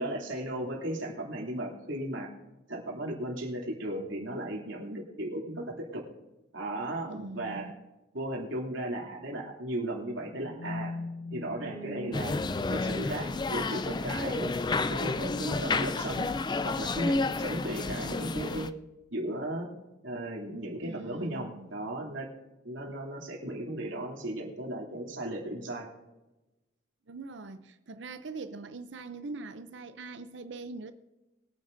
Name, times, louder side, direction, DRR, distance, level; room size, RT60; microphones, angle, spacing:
voice 1, 0.0-2.3 2.7-6.0 6.5-7.7 8.1-10.9 11.3-12.3 12.7-14.5 14.9-16.3 16.6-18.7 19.1-19.7 20.0-22.3 22.6-25.9, right 1 dB, 85° right, 2.9 m, -36 dB
voice 2, 7.0-7.7 20.8-21.7 22.7-22.8 27.1-30.9, right 3 dB, 70° right, 0.6 m, -42 dB
sound 1, 10.3-14.4, left 1 dB, 65° left, 5.0 m, -41 dB
sound 2, 12.1-18.7, left 3 dB, 25° left, 0.3 m, -31 dB
21.5 x 9.3 x 2.6 m
head